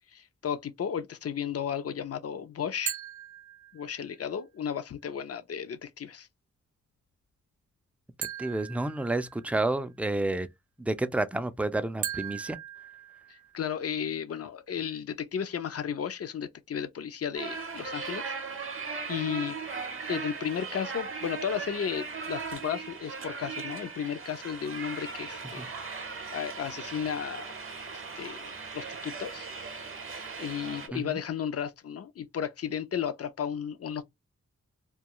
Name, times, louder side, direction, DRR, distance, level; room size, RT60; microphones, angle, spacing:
voice 1, 0.1-2.9 3.7-6.3 13.3-18.3 18.8-19.6 20.1-25.7 26.3-27.5 27.9-29.5 30.4-34.0, left 8 dB, 55° left, 0.5 m, -34 dB
sound 1, 2.9-4.2 8.2-9.7 12.0-13.7, right 9 dB, 85° right, 0.5 m, -39 dB
voice 2, 8.4-10.5 10.8-12.6 25.6-25.7 30.9-31.2, right 2 dB, 5° right, 0.3 m, -30 dB
sound 2, 17.3-30.9, right 5 dB, 45° right, 0.7 m, -38 dB
2.3 x 2.3 x 2.8 m
wide cardioid pair, 70°, 29 cm